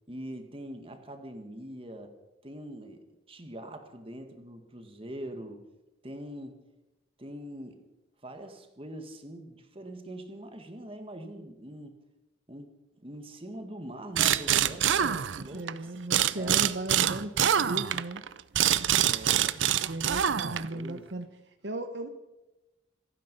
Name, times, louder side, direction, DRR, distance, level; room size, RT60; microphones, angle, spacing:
voice 1, 0.1-2.1 2.4-5.7 6.0-6.6 7.2-7.8 8.2-11.9 12.5-12.7 13.0-16.6 18.9-19.6 20.3-21.1, right 1 dB, 30° right, 6 dB, 1.8 m, -43 dB
sound 1, 14.1-15.7 16.1-20.8, right 10 dB, 80° right, 0.6 m, -25 dB
voice 2, 15.5-18.2 19.6-21.3 21.6-22.1, right 2 dB, 65° right, 7 dB, 1.0 m, -36 dB
27.0 x 9.4 x 5.4 m, 1.0 s
head